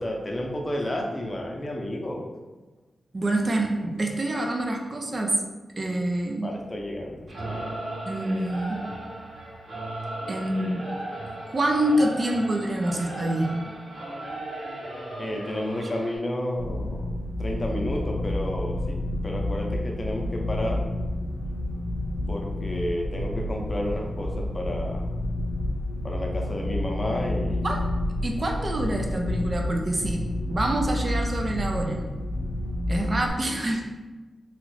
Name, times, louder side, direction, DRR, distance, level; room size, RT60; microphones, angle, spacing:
voice 1, 0.0-2.2 6.4-7.7 15.2-17.1 17.4-20.9 22.3-25.1 26.0-27.7, left 1 dB, 30° left, 0 dB, 0.6 m, -31 dB
voice 2, 3.1-5.4 5.8-6.5 8.1-8.9 10.3-10.8 11.5-13.5 15.8-15.9 27.6-27.9 28.2-32.1 32.9-33.8, right 1 dB, 45° right, 2 dB, 0.4 m, -26 dB
Singing / Musical instrument, 7.3-16.2, right 1 dB, 85° right, 1.1 m, -36 dB
sound 1, 16.6-33.3, left 1 dB, 85° left, 0.4 m, -29 dB
3.0 x 2.4 x 3.1 m, 1.2 s
cardioid pair, 60°, 0 cm